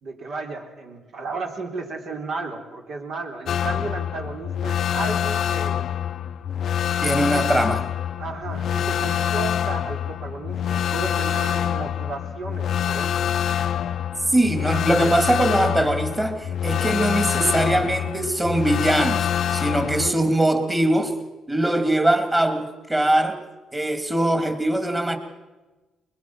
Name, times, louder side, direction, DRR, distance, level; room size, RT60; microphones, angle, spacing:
voice 1, 0.0-5.8 7.3-7.4 8.2-13.3 19.8-20.2, right 3 dB, 60° right, 3 dB, 3.8 m, -33 dB
sound 1, 3.5-20.1, left 9 dB, 65° left, 0.6 m, -25 dB
voice 2, 7.0-7.8 14.3-21.1 21.5-23.4 23.7-25.2, right 1 dB, 15° right, 7 dB, 3.1 m, -21 dB
21.5 x 21.5 x 6.2 m, 1.2 s
cardioid pair, 90°, 0 cm